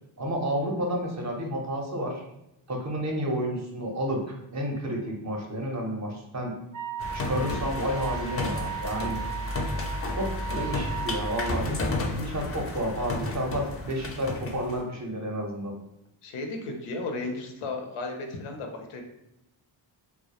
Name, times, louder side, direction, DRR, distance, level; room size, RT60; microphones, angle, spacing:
voice 1, 0.2-2.2 2.7-6.5 7.1-9.2 10.2-15.7, equal, 35° right, 1 dB, 0.6 m, -31 dB
Wind instrument woodwind instrument, 6.7-11.6, right 7 dB, 85° right, 0.6 m, -36 dB
sound 1, 7.0-14.8, left 2 dB, 30° left, 0.4 m, -32 dB
voice 2, 16.2-19.0, left 3 dB, 85° left, 3 dB, 0.6 m, -34 dB
2.2 x 2.0 x 2.8 m, 0.86 s
cardioid pair, 80°, 50 cm